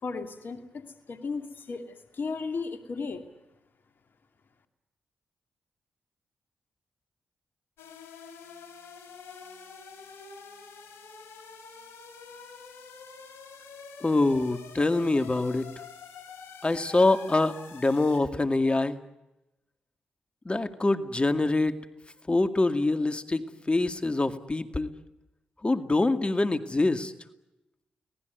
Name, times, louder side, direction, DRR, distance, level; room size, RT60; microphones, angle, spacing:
voice 1, 0.0-3.2, left 4 dB, 60° left, 7 dB, 2.5 m, -35 dB
sound 1, 7.8-18.2, left 5 dB, 75° left, 4.5 m, -47 dB
voice 2, 14.0-15.7 16.6-19.0 20.5-21.8 22.3-24.9 25.6-27.1, left 2 dB, 30° left, 9 dB, 2.2 m, -25 dB
25.5 x 19.0 x 9.4 m, 0.92 s
supercardioid pair, 45°, 4 cm